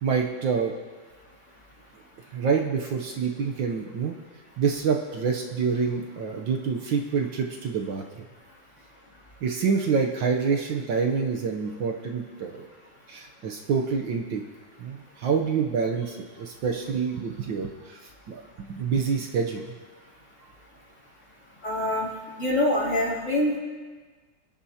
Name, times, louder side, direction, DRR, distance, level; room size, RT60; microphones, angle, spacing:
voice 1, 0.0-0.7 2.3-4.2 4.6-8.2 9.4-12.6 13.1-14.4 14.8-19.7, right 5 dB, 65° right, 2 dB, 1.5 m, -27 dB
voice 2, 21.6-22.1 22.4-23.6, left 1 dB, 35° left, -6 dB, 3.3 m, -24 dB
27.0 x 10.0 x 2.9 m, 1.4 s
omnidirectional pair, 2.3 m